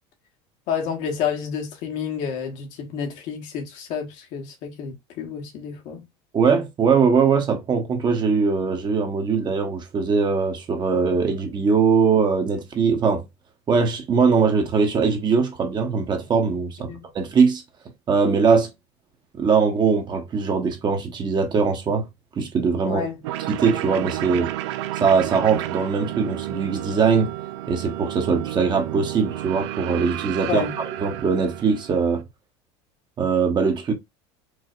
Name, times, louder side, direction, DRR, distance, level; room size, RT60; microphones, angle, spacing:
voice 1, 0.7-6.1 16.9-17.1 22.8-23.2 30.5-30.8, left 7 dB, 60° left, 1.4 m, -29 dB
voice 2, 6.3-13.3 13.7-17.6 18.1-18.7 19.3-22.1 22.3-23.0 23.5-24.5 24.9-27.3 27.7-30.7 31.0-32.2 33.2-33.9, right 5 dB, 30° right, 1.0 m, -21 dB
sound 1, 23.2-32.2, right 14 dB, 85° right, 0.4 m, -31 dB
4.7 x 2.8 x 2.4 m
supercardioid pair, 120°, 14 cm